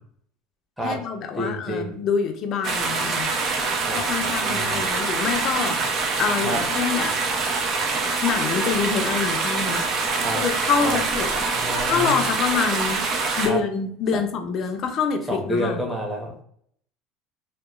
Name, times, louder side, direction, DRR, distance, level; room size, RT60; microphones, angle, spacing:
voice 1, 0.8-3.3 3.9-7.2 8.2-9.9 10.3-11.5 11.9-13.0 13.4-15.8, left 6 dB, 50° left, 6 dB, 0.4 m, -26 dB
voice 2, 1.4-1.9 3.8-4.8 6.4-6.6 10.2-10.4 10.8-11.0 11.5-12.2 13.4-13.6 15.3-16.4, equal, 5° right, -2 dB, 0.9 m, -29 dB
sound 1, 2.6-13.5, right 4 dB, 50° right, 0.5 m, -25 dB
2.8 x 2.2 x 2.3 m, 0.65 s
hypercardioid pair, 90°, 0 cm